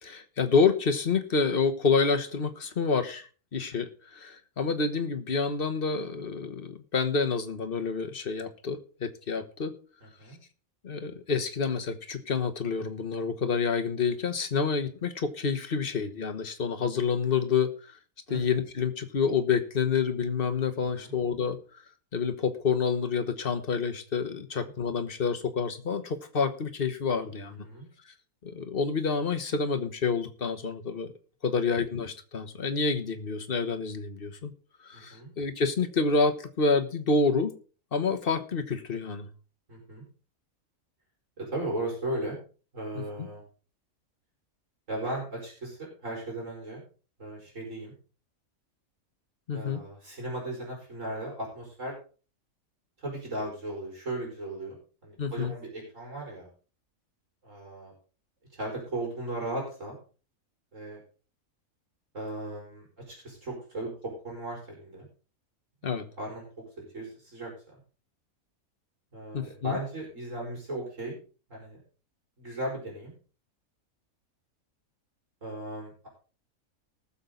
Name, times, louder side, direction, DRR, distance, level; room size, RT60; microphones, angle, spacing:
voice 1, 0.0-9.7 10.8-17.7 18.3-21.6 22.1-27.6 28.4-31.1 31.4-34.5 34.8-37.5 37.9-39.3 42.9-43.3 49.5-49.8 55.2-55.5 65.8-66.1 69.3-69.8, left 5 dB, 40° left, 9 dB, 1.3 m, -28 dB
voice 2, 34.9-35.3 39.7-40.0 41.4-42.4 42.7-43.4 44.9-46.8 47.2-47.9 49.5-51.9 53.0-56.5 57.4-57.9 58.5-60.0 60.7-61.0 62.1-65.1 66.2-66.4 66.8-67.5 69.1-71.1 71.5-71.8 72.4-73.1 75.4-76.1, right 1 dB, 60° right, -2 dB, 5.5 m, -36 dB
19.5 x 7.2 x 3.9 m, 0.37 s
omnidirectional pair, 1.5 m